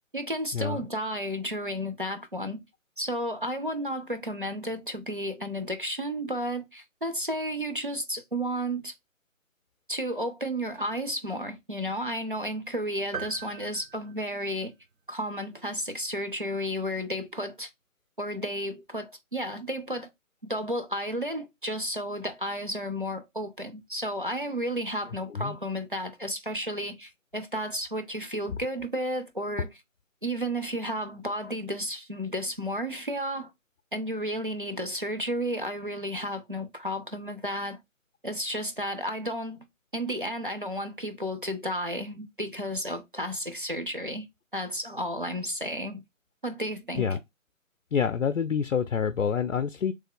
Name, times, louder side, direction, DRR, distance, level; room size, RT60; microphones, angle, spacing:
voice 1, 0.1-2.6 3.0-8.9 9.9-14.7 15.1-17.7 18.2-20.1 20.4-29.7 30.2-33.5 33.9-37.8 38.2-39.7 39.9-44.3 44.5-46.0 46.4-47.1, equal, 40° right, 0.4 m, -32 dB
sound 1, 13.1-14.9, right 6 dB, 80° right, 0.8 m, -41 dB
voice 2, 47.9-49.9, left 7 dB, 65° left, 0.5 m, -27 dB
3.3 x 2.8 x 3.6 m
figure-of-eight pair, 165°, 41 cm